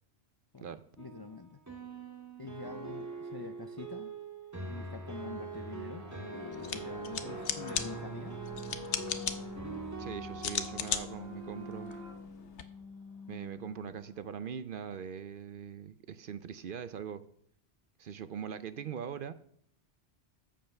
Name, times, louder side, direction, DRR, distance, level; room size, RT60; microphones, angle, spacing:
voice 1, 0.5-1.6 2.4-4.1 4.7-8.4, left 4 dB, 40° left, 8 dB, 0.3 m, -46 dB
Basement Pianist (Ambient Piano Snippet), 1.0-11.0, right 4 dB, 15° right, 1.6 m, -43 dB
sound 1, 5.5-14.3, left 3 dB, 25° left, 2.4 m, -46 dB
sound 2, 6.5-12.6, left 8 dB, 80° left, 1.1 m, -39 dB
voice 2, 10.0-11.9 13.3-17.2 18.0-19.3, right 7 dB, 55° right, 13 dB, 0.7 m, -41 dB
14.0 x 5.5 x 5.8 m, 0.65 s
omnidirectional pair, 1.2 m